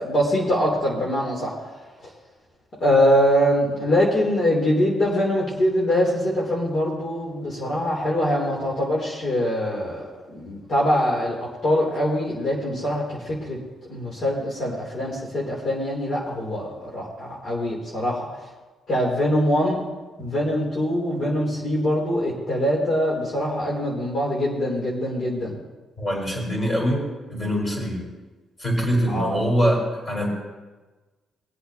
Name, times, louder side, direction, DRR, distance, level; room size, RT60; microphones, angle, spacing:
voice 1, 0.0-1.7 2.8-10.0 10.3-13.6 13.9-18.3 18.9-19.8 20.2-25.6 29.1-29.4, equal, 50° left, -5 dB, 3.2 m, -23 dB
voice 2, 26.0-28.0 28.6-30.3, equal, 30° left, -2 dB, 4.5 m, -24 dB
21.5 x 8.2 x 2.9 m, 1.2 s
cardioid pair, 90°, 0 cm